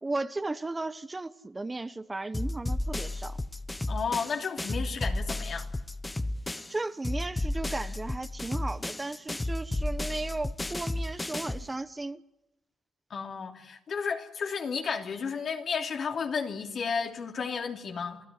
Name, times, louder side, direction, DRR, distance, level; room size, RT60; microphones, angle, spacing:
voice 1, 0.0-3.4 6.7-12.2, right 2 dB, 20° right, 1.1 m, -35 dB
sound 1, 2.3-6.8 7.0-11.7, left 1 dB, 15° left, 1.0 m, -33 dB
voice 2, 3.9-5.7 13.1-18.2, left 5 dB, 60° left, 3.0 m, -32 dB
28.0 x 15.5 x 9.9 m
cardioid pair, 70°, 0 cm